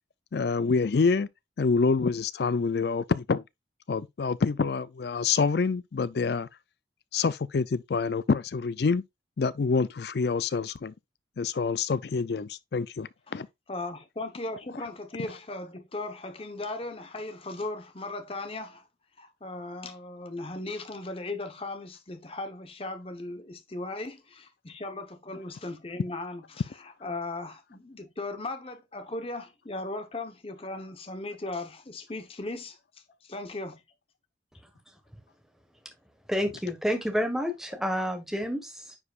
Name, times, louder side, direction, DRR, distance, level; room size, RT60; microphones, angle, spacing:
voice 1, 0.3-1.3 1.6-3.4 3.9-6.5 7.1-9.0 9.4-10.9 11.4-13.5, left 4 dB, 60° left, 0.4 m, -26 dB
voice 2, 13.3-18.8 19.2-32.8 33.2-33.8, left 2 dB, 30° left, 0.9 m, -37 dB
voice 3, 36.3-39.0, equal, ahead, 1.3 m, -29 dB
9.7 x 4.9 x 2.4 m
head